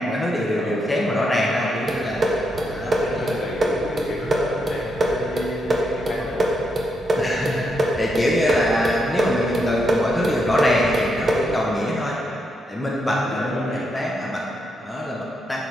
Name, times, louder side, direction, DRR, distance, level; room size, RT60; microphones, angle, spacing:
voice 1, 0.0-2.4 2.7-3.4 7.2-7.7 8.0-12.2 12.7-15.7, equal, 15° left, -4 dB, 1.1 m, -24 dB
voice 2, 0.5-1.7 2.5-6.6 12.0-12.4 12.8-13.9, left 2 dB, 60° left, -4 dB, 1.6 m, -32 dB
sound 1, 1.9-11.6, right 1 dB, 35° right, 1.1 m, -24 dB
7.8 x 4.3 x 5.4 m, 3.0 s
cardioid pair, 90°, 0 cm